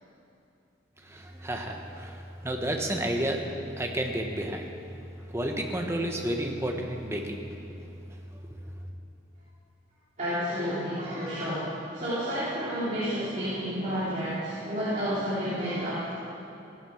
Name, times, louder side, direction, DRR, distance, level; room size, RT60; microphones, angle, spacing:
voice 1, 1.0-4.7 5.3-7.4, right 1 dB, 15° right, 2 dB, 1.2 m, -31 dB
voice 2, 10.2-16.1, equal, 40° right, -11 dB, 3.4 m, -30 dB
16.0 x 11.5 x 6.5 m, 2.7 s
head